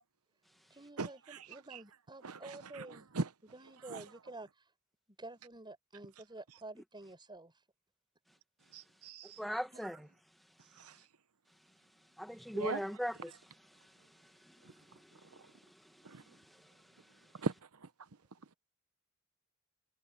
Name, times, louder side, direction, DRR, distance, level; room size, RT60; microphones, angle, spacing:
voice 1, 0.7-3.1 3.5-4.5 5.2-7.5 9.4-9.9, right 2 dB, 20° right, 6.5 m, -50 dB
voice 2, 8.7-9.4 12.5-12.8 16.0-16.2 17.4-17.5, right 3 dB, 80° right, 1.0 m, -37 dB
voice 3, 9.4-10.1 12.2-13.3 14.5-15.5, equal, ahead, 1.6 m, -39 dB
head